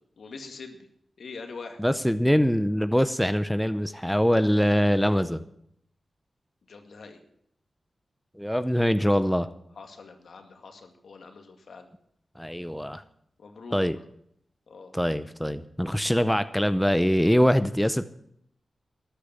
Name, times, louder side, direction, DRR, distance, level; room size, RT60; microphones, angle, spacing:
voice 1, 0.2-0.9 1.2-1.8 6.7-7.2 9.8-11.9 13.4-13.8 14.7-14.9, left 4 dB, 75° left, 5 dB, 2.1 m, -43 dB
voice 2, 1.8-5.4 8.4-9.5 12.4-13.0 13.7-14.0 14.9-18.1, equal, 5° left, 11 dB, 0.7 m, -23 dB
13.5 x 10.0 x 7.2 m, 0.71 s
wide cardioid pair, 100°, 0 cm